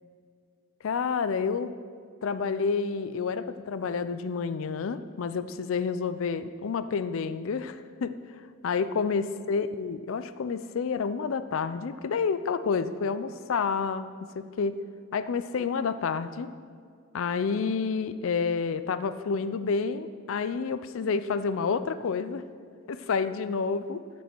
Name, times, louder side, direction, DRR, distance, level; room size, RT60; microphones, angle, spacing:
voice 1, 0.8-1.7 2.2-8.2 8.6-14.1 14.4-14.8 15.1-16.5 17.1-22.4 22.9-24.0, left 5 dB, 65° left, 12 dB, 0.4 m, -29 dB
14.0 x 5.3 x 4.5 m, 2.1 s
head